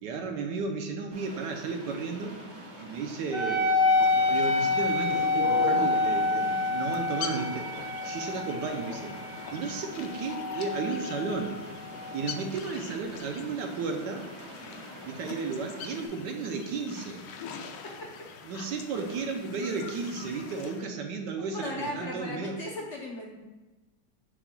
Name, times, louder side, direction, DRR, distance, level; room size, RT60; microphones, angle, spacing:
voice 1, 0.0-2.4 2.8-3.7 4.0-7.7 8.0-9.2 9.5-11.6 12.1-14.3 15.0-17.3 18.5-22.6, right 4 dB, 75° right, 3 dB, 1.3 m, -33 dB
sound 1, 1.1-16.1, right 1 dB, 90° right, 2.4 m, -46 dB
Wind instrument woodwind instrument, 3.3-12.3, left 3 dB, 35° left, 1.0 m, -28 dB
sound 2, 3.8-20.9, left 6 dB, 75° left, 1.2 m, -42 dB
voice 2, 21.5-23.3, left 1 dB, 55° left, -3 dB, 0.8 m, -36 dB
7.1 x 6.8 x 2.2 m, 1.1 s
omnidirectional pair, 2.0 m